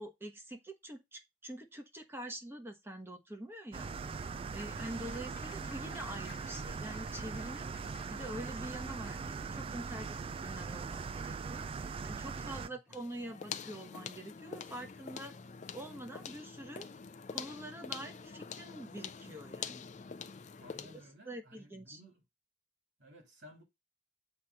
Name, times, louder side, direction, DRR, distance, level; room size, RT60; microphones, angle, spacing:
voice 1, 0.0-15.3 15.7-16.9 17.3-19.9 20.9-22.0, right 1 dB, 15° right, 1.1 m, -46 dB
sound 1, 3.7-12.7, right 5 dB, 30° right, 0.3 m, -41 dB
Applause, 4.6-10.9, left 7 dB, 60° left, 1.0 m, -58 dB
voice 2, 4.7-5.1 12.3-13.0 20.6-22.2 23.0-23.6, equal, 85° right, 2.8 m, -56 dB
sound 2, 12.9-21.1, left 6 dB, 40° left, 0.5 m, -45 dB
7.4 x 3.2 x 5.4 m
head